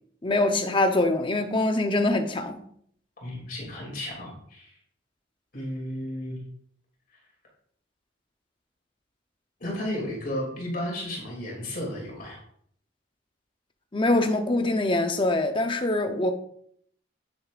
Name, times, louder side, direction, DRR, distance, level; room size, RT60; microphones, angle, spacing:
voice 1, 0.2-2.6 13.9-16.3, left 2 dB, 25° left, 0.7 m, -24 dB
voice 2, 3.2-4.7 5.5-6.4 9.6-12.4, left 1 dB, 45° left, 2.6 m, -33 dB
9.0 x 8.5 x 2.5 m
head